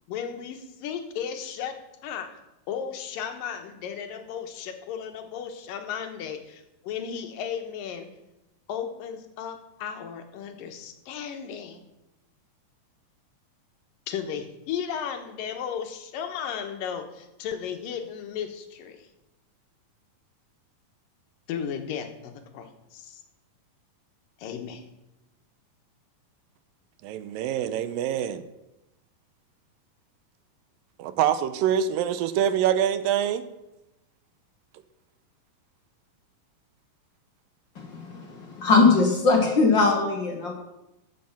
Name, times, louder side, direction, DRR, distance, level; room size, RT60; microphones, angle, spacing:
voice 1, 0.1-2.3 2.7-8.1 8.7-11.8 14.1-19.1 21.5-23.2 24.4-24.8, left 8 dB, 80° left, 6 dB, 2.8 m, -35 dB
voice 2, 27.0-28.4 31.0-33.5, right 9 dB, 90° right, 12 dB, 2.4 m, -25 dB
voice 3, 37.7-40.5, left 4 dB, 50° left, 2 dB, 1.5 m, -21 dB
14.0 x 7.5 x 5.9 m, 0.93 s
omnidirectional pair, 4.0 m